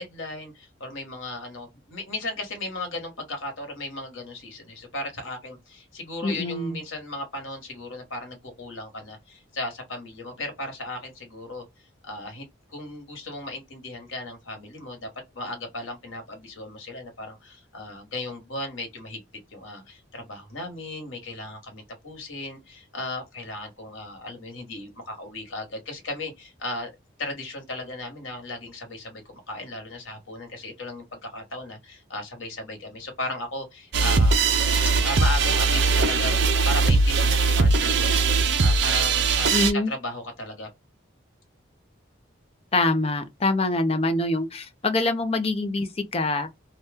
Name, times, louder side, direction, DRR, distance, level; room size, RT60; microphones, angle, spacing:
voice 1, 0.0-11.6 12.0-19.2 19.5-26.9 27.2-34.4 34.8-40.7, left 2 dB, 85° left, 1.2 m, -36 dB
voice 2, 6.2-6.8 39.5-39.9 42.7-45.9 46.1-46.5, left 2 dB, 30° left, 0.5 m, -24 dB
sound 1, 33.9-39.7, right 4 dB, 60° right, 0.5 m, -20 dB
2.8 x 2.2 x 3.5 m
head